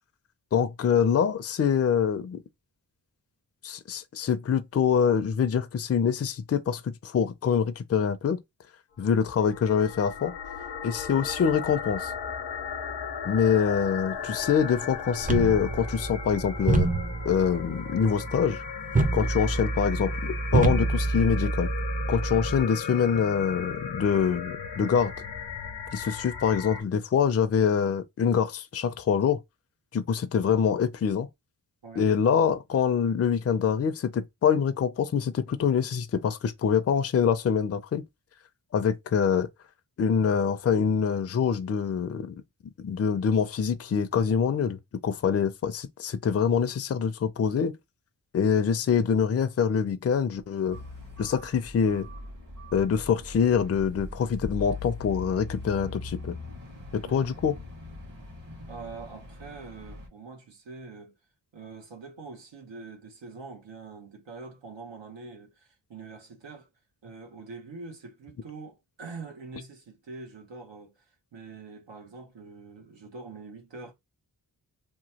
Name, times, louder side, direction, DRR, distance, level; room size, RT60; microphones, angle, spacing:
voice 1, 0.5-2.4 3.6-8.4 9.0-10.3 10.8-12.1 13.2-16.9 17.2-18.6 19.1-21.7 22.1-25.1 25.9-29.4 29.9-31.3 32.0-38.0 38.7-39.5 40.0-42.4 42.8-47.8 48.3-50.8 51.2-52.1 52.7-56.3 56.9-57.6, left 7 dB, 35° left, 0.4 m, -25 dB
sound 1, 9.0-26.8, left 6 dB, 85° left, 0.7 m, -37 dB
sound 2, 15.2-22.6, right 3 dB, 20° right, 0.5 m, -27 dB
sound 3, 50.7-60.1, left 2 dB, 50° right, 1.4 m, -41 dB
voice 2, 58.7-61.1 61.5-66.7 67.0-70.9 71.3-73.9, right 4 dB, 85° right, 1.0 m, -44 dB
2.9 x 2.2 x 2.8 m
wide cardioid pair, 80°, 43 cm